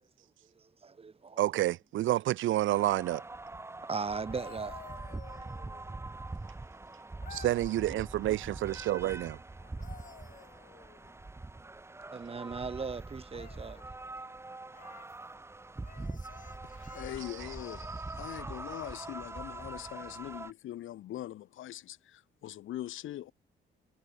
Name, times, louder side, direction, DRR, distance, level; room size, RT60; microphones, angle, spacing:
voice 1, 0.8-1.4 3.9-4.8 12.1-13.8, right 5 dB, 30° right, 1.2 m, -37 dB
voice 2, 1.4-3.2 7.3-9.4, right 14 dB, 75° right, 0.8 m, -29 dB
sound 1, 2.7-20.5, right 2 dB, 15° right, 0.8 m, -43 dB
sound 2, 4.1-6.1 7.2-8.2 9.6-11.2 13.3-13.9 14.7-15.2 15.8-17.6 19.5-19.7, left 6 dB, 40° left, 1.8 m, -53 dB
voice 3, 16.8-23.3, left 13 dB, 80° left, 3.9 m, -42 dB
cardioid pair, 90°, 20 cm